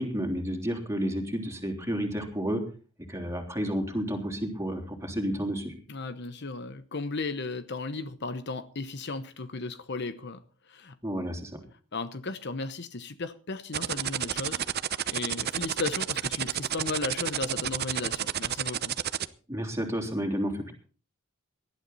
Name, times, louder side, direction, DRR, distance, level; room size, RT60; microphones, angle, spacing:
voice 1, 0.0-2.6 3.1-5.7 11.0-11.6 19.5-20.7, equal, 15° right, 3.4 m, -31 dB
voice 2, 5.9-11.0 11.9-14.6 15.1-19.0, left 3 dB, 55° left, 1.0 m, -35 dB
sound 1, 13.7-19.3, right 10 dB, 50° right, 0.8 m, -30 dB
19.0 x 12.0 x 4.1 m
head